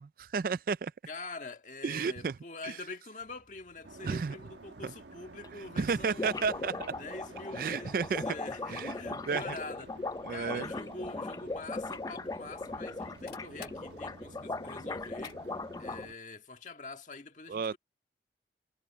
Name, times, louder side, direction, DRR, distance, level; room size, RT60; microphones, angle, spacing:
voice 1, 0.0-0.9 1.8-2.4 2.6-2.8 4.0-4.4 4.8-4.9 5.8-6.9 7.5-8.3 8.7-9.0 9.3-9.4 10.3-10.7 17.5-17.8, right 5 dB, 55° right, 0.4 m, -32 dB
voice 2, 1.0-6.4 7.0-10.0 10.3-15.4 15.8-17.8, left 3 dB, 45° left, 1.7 m, -45 dB
sound 1, 3.2-15.4, left 5 dB, 70° left, 3.2 m, -61 dB
sound 2, 3.8-16.1, right 2 dB, 85° right, 1.4 m, -52 dB
sound 3, 4.8-4.9 5.1-5.2 5.4-5.5 5.8-16.1, left 3 dB, 20° left, 0.4 m, -39 dB
head